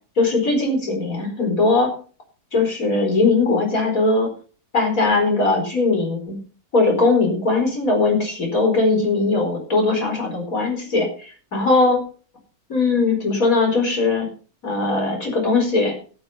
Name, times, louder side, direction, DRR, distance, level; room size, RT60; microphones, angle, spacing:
voice 1, 0.2-1.9 2.5-4.3 4.7-6.4 6.7-12.0 12.7-14.3 14.6-15.9, left 3 dB, 65° left, 2 dB, 5.0 m, -20 dB
12.0 x 9.1 x 5.7 m, 0.39 s
omnidirectional pair, 1.6 m